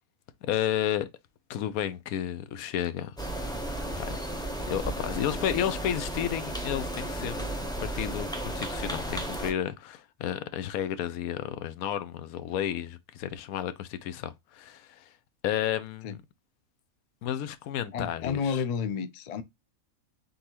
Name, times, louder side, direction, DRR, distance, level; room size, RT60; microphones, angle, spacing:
voice 1, 0.5-1.1 1.5-3.2 3.9-4.2 4.7-15.1 15.4-16.2 17.2-18.6, left 10 dB, 90° left, 1.1 m, -32 dB
sound 1, 3.2-9.5, right 1 dB, 5° left, 0.5 m, -34 dB
voice 2, 17.9-19.4, left 6 dB, 75° left, 0.3 m, -31 dB
4.0 x 3.7 x 2.9 m
omnidirectional pair, 1.5 m